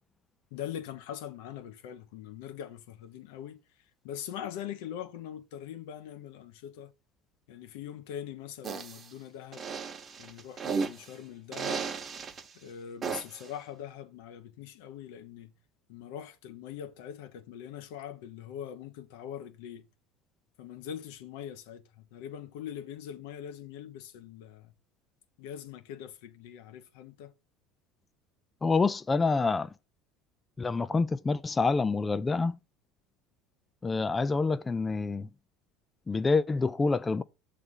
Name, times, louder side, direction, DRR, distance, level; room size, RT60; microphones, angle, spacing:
voice 1, 0.5-3.6 4.0-6.9 7.5-9.7 10.2-11.9 12.5-15.6 15.9-19.9 20.6-24.7 25.4-27.3, left 10 dB, 80° left, 0.9 m, -42 dB
sound 1, 8.6-9.0 9.5-11.1 11.5-12.4 13.0-13.5, right 5 dB, 30° right, 1.1 m, -34 dB
voice 2, 28.6-29.7 30.6-32.6 33.8-35.3 36.1-37.2, left 4 dB, 20° left, 0.4 m, -27 dB
6.6 x 3.3 x 5.4 m
supercardioid pair, 105°, 0 cm